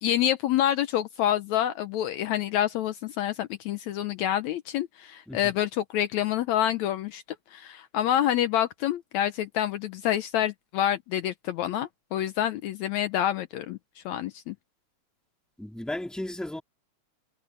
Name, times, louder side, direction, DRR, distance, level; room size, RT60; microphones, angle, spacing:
voice 1, 0.0-7.2 7.5-14.6, left 11 dB, 75° left, 2.0 m, -27 dB
voice 2, 15.6-16.6, left 1 dB, ahead, 3.1 m, -35 dB
omnidirectional pair, 3.4 m